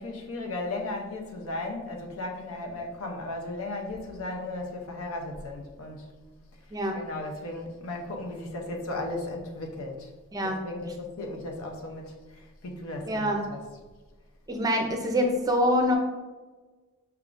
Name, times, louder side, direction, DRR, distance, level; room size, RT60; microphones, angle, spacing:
voice 1, 0.0-6.1 6.9-10.1 10.4-13.6, left 2 dB, 70° left, 0.7 m, -36 dB
voice 2, 13.0-13.4 14.5-16.0, equal, 15° right, 0.5 m, -25 dB
5.7 x 3.5 x 2.5 m
head